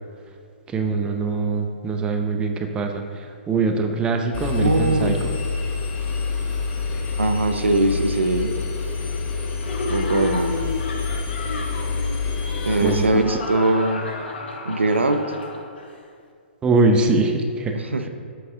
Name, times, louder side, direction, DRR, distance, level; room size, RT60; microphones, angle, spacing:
voice 1, 0.7-5.2 12.8-13.2 16.6-17.8, right 3 dB, 15° right, 4 dB, 0.5 m, -22 dB
Engine, 4.3-13.1, left 4 dB, 30° left, 0.8 m, -27 dB
voice 2, 4.5-5.2 7.2-8.6 9.9-10.5 12.6-14.1 14.6-15.2 17.7-18.1, right 2 dB, 90° right, 8 dB, 0.5 m, -21 dB
Laughter, 9.6-16.0, left 2 dB, 65° left, 0.9 m, -32 dB
7.8 x 4.7 x 3.7 m, 2.2 s
hypercardioid pair, 125°, 6 cm